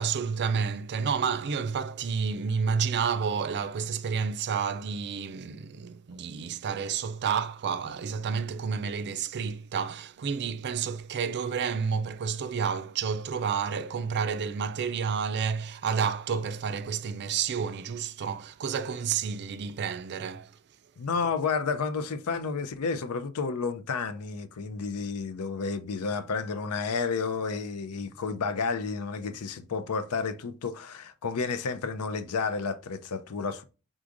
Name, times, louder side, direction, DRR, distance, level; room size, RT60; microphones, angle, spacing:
voice 1, 0.0-20.5, right 6 dB, 50° right, 0.4 m, -30 dB
voice 2, 21.0-33.6, left 5 dB, 80° left, 0.5 m, -31 dB
4.8 x 3.7 x 2.5 m
head